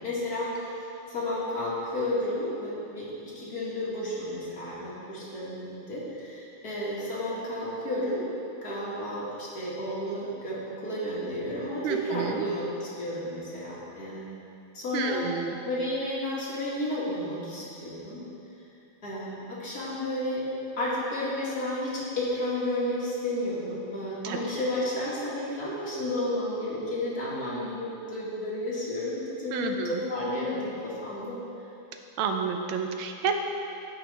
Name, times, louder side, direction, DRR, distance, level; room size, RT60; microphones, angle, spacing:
voice 1, 0.0-3.1 3.4-8.3 8.6-14.3 14.7-15.2 15.7-18.2 19.0-20.5 20.8-31.4, left 1 dB, 50° left, -7 dB, 2.3 m, -32 dB
voice 2, 11.8-12.4 14.9-15.5 24.2-24.4 29.5-30.0 32.2-33.4, right 6 dB, 85° right, 5 dB, 1.5 m, -30 dB
15.5 x 5.9 x 3.4 m, 2.7 s
omnidirectional pair, 2.2 m